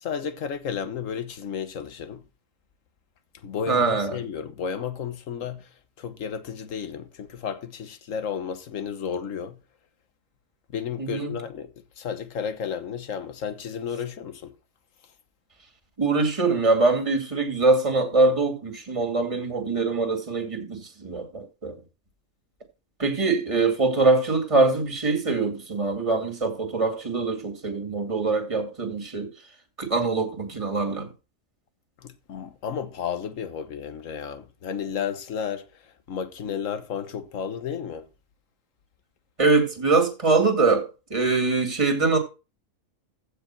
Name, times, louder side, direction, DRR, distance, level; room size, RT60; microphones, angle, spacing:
voice 1, 0.0-2.2 3.4-5.7 6.0-9.6 10.7-11.7 12.0-14.5 32.0-35.7 36.1-38.1, left 7 dB, 70° left, 1.4 m, -32 dB
voice 2, 3.7-4.2 11.0-11.3 16.0-21.8 23.0-29.3 29.8-31.1 39.4-42.2, right 3 dB, 25° right, 2.2 m, -23 dB
15.0 x 5.2 x 4.4 m
omnidirectional pair, 1.4 m